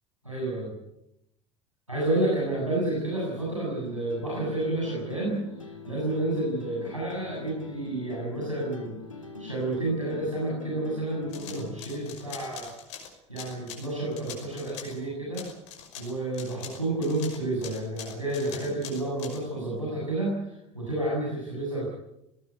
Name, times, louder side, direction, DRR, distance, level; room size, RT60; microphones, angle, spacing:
voice 1, 0.2-0.7 1.9-9.0 9.4-12.7 13.3-15.5 16.0-21.9, right 2 dB, 90° right, -5 dB, 7.6 m, -30 dB
sound 1, 3.8-11.8, left 4 dB, 85° left, 2.6 m, -43 dB
sound 2, 11.3-15.0 15.3-19.4, left 8 dB, 60° left, 5.8 m, -43 dB
20.5 x 19.0 x 9.5 m, 0.84 s
figure-of-eight pair, 65°, 16 cm